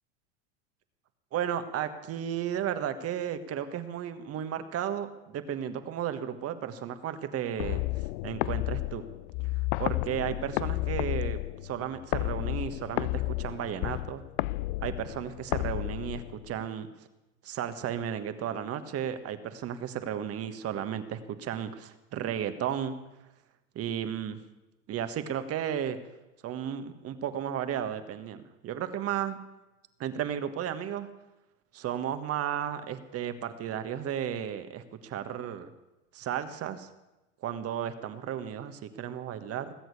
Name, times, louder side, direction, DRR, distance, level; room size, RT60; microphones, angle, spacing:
voice 1, 1.3-7.8 8.2-9.0 9.8-14.2 14.8-16.9 17.4-23.0 23.7-24.4 24.9-26.0 26.4-29.4 30.0-31.1 31.7-35.7 36.1-36.9 37.4-39.7, right 9 dB, 40° right, 10 dB, 1.5 m, -34 dB
sound 1, 7.6-16.6, left 20 dB, 60° left, 0.5 m, -32 dB
19.0 x 8.0 x 8.2 m, 1.0 s
hypercardioid pair, 100°, 36 cm